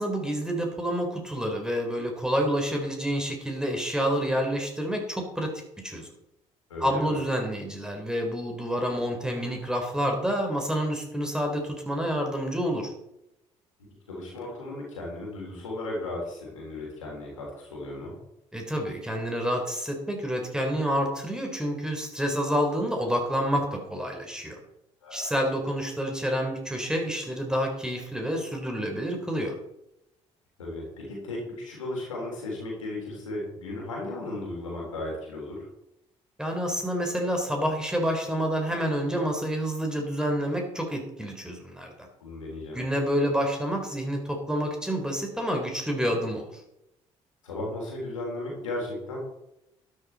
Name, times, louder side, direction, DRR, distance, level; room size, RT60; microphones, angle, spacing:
voice 1, 0.0-6.1 6.8-12.9 18.5-24.6 25.1-29.6 36.4-42.1 42.7-46.5, equal, 5° right, 2 dB, 3.9 m, -28 dB
voice 2, 6.7-7.2 14.1-18.2 25.0-25.3 30.6-35.7 42.2-42.8 47.4-49.2, left 2 dB, 85° left, -2 dB, 3.5 m, -35 dB
12.5 x 10.0 x 4.2 m, 0.86 s
figure-of-eight pair, 50°, 16 cm